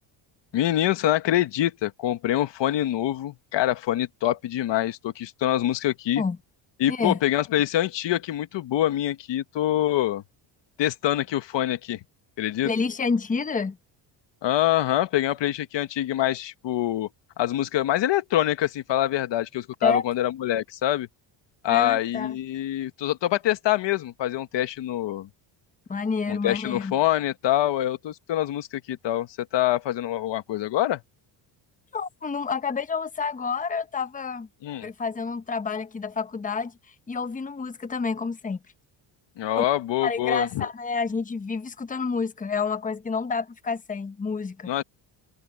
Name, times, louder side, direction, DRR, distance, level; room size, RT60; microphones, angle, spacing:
voice 1, 0.5-6.2 6.8-10.2 10.8-12.0 12.4-12.7 14.4-17.1 17.4-21.1 21.6-25.3 26.3-31.0 34.6-34.9 39.4-40.6 44.7-44.8, left 13 dB, 60° left, 1.5 m, -25 dB
voice 2, 6.9-7.2 12.6-13.8 19.8-20.0 21.7-22.4 25.9-26.9 31.9-34.5 34.8-38.6 39.5-39.7 40.0-44.7, left 5 dB, 15° left, 0.9 m, -29 dB
cardioid pair, 120°, 48 cm